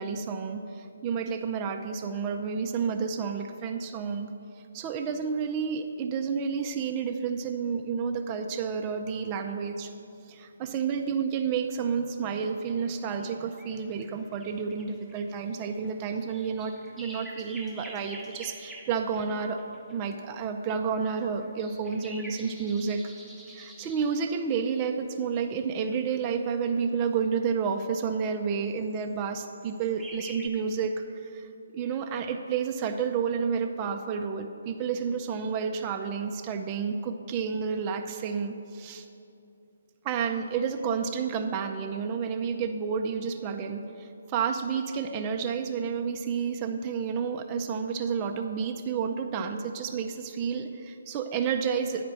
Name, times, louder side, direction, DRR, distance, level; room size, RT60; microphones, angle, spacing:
voice 1, 0.0-4.3 4.7-9.9 10.3-19.6 19.9-23.0 23.5-39.1 40.0-52.0, right 6 dB, 25° right, 4 dB, 0.5 m, -30 dB
sound 1, 12.4-20.1 21.0-24.2 25.6-26.9 27.4-27.8 28.8-29.1 29.5-30.5, right 1 dB, ahead, 0.9 m, -48 dB
9.4 x 5.0 x 7.4 m, 2.7 s
figure-of-eight pair, 140°, 0 cm